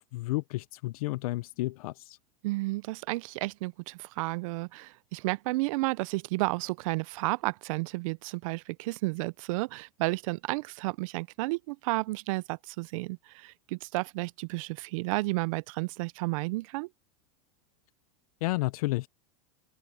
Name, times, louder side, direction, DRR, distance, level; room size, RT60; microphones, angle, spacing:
voice 1, 0.0-2.2 18.4-19.1, left 19 dB, 75° left, 0.5 m, -31 dB
voice 2, 2.4-16.9, right 23 dB, 65° right, 0.5 m, -32 dB
open air
supercardioid pair, 140°, 18 cm